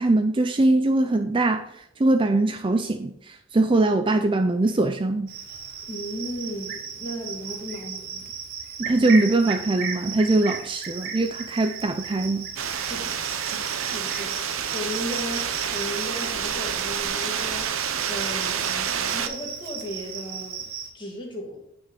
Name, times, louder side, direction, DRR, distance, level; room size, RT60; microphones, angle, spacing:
voice 1, 0.0-5.3 8.8-12.5, right 2 dB, 25° right, 0.4 m, -22 dB
Cricket, 5.3-20.9, right 6 dB, 50° right, 1.3 m, -36 dB
voice 2, 5.9-8.3 12.7-17.8 18.1-20.7 20.9-21.6, equal, 25° left, 2.1 m, -36 dB
sound 1, 12.6-19.3, right 8 dB, 80° right, 0.8 m, -28 dB
9.1 x 6.0 x 4.5 m
head